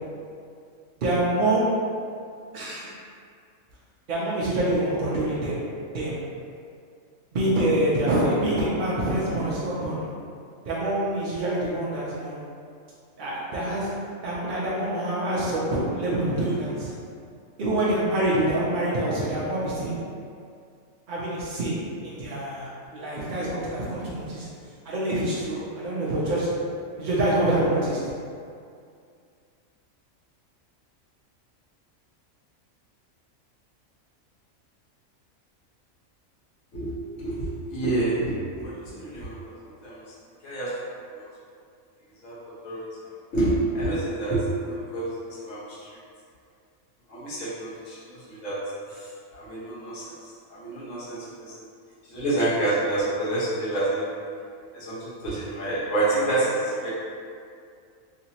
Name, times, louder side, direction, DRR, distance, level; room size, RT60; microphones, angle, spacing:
voice 1, 1.0-1.7 2.5-2.9 4.1-5.6 5.9-6.2 7.3-10.1 10.6-12.4 13.2-13.9 14.2-16.9 17.6-20.0 21.1-21.8 22.0-24.5 24.9-26.5 27.0-28.0, right 1 dB, 55° right, -7 dB, 0.5 m, -26 dB
voice 2, 36.7-39.5 39.8-40.0 40.4-40.7 41.2-41.3 42.2-42.9 43.3-45.9 47.1-48.6 48.9-51.5 52.1-54.1 54.7-56.9, right 2 dB, 65° left, -10 dB, 1.4 m, -28 dB
3.3 x 2.8 x 2.8 m, 2.3 s
omnidirectional pair, 1.4 m